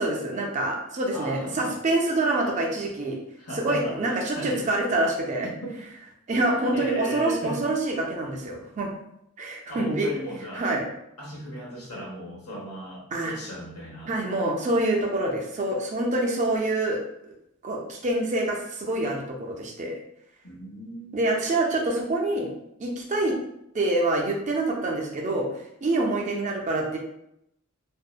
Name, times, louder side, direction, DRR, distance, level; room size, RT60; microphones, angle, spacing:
voice 1, 0.0-3.2 3.6-5.5 6.3-8.9 9.4-10.1 10.6-10.9 13.1-13.4 14.1-17.3 17.6-20.0 21.1-22.5 22.8-23.3 23.7-25.5 25.8-27.0, right 2 dB, 35° right, 0 dB, 0.4 m, -26 dB
voice 2, 1.1-1.8 3.4-4.7 5.4-5.8 6.7-7.6 9.7-10.7 11.2-14.1 20.4-21.2, right 1 dB, 90° left, -4 dB, 0.9 m, -36 dB
2.6 x 2.1 x 2.3 m, 0.78 s
head